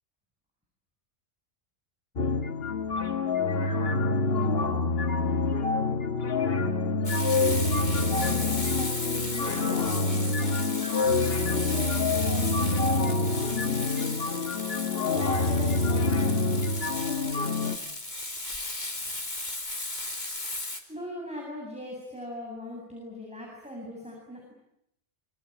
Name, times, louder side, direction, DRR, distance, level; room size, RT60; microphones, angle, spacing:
sound 1, 2.2-17.8, left 3 dB, 60° left, 1.8 m, -26 dB
Frying (food), 7.0-20.8, left 2 dB, 40° left, 3.0 m, -35 dB
voice 1, 7.5-10.8 11.5-14.3 15.1-16.4 17.0-17.5 18.9-19.2 20.9-24.5, equal, 5° right, -2 dB, 7.9 m, -40 dB
26.5 x 23.0 x 8.9 m, 0.78 s
omnidirectional pair, 1.2 m